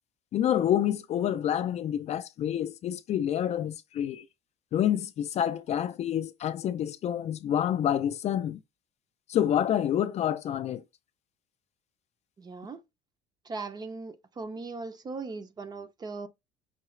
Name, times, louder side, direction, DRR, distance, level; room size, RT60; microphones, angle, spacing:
voice 1, 0.3-4.2 4.7-8.6 9.3-10.8, left 10 dB, 40° left, 0.4 m, -28 dB
voice 2, 12.4-12.8 13.4-16.3, right 4 dB, 25° right, 0.5 m, -39 dB
5.6 x 2.3 x 3.1 m
cardioid pair, 140°, 17 cm